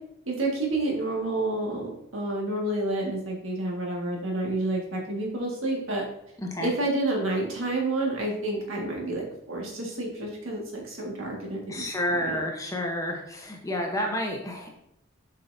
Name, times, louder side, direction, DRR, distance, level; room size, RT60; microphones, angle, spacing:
voice 1, 0.3-6.0 6.6-12.4, right 2 dB, 70° right, -1 dB, 1.8 m, -29 dB
voice 2, 6.4-6.7 11.7-14.7, left 1 dB, 15° left, 1 dB, 0.9 m, -30 dB
7.5 x 5.7 x 2.7 m, 0.77 s
head